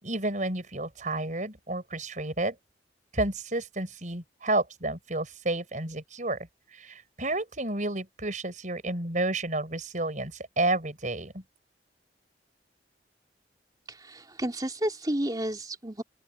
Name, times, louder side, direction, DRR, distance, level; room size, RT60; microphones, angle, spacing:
voice 1, 0.0-2.6 3.1-6.4 6.7-11.4, right 2 dB, 45° right, 5.6 m, -31 dB
voice 2, 13.9-16.0, right 1 dB, 20° right, 3.4 m, -31 dB
open air
head